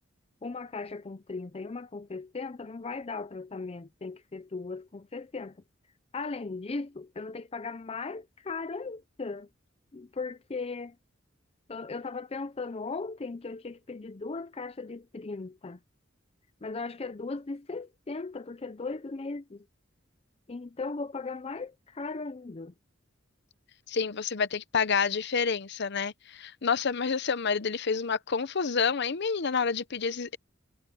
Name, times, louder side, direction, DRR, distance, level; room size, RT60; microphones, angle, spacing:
voice 1, 0.4-5.6 6.1-9.5 9.9-11.0 11.7-15.8 16.6-19.7 20.5-22.7, left 3 dB, 30° left, 0.5 m, -37 dB
voice 2, 23.9-30.4, left 5 dB, 60° left, 0.8 m, -28 dB
head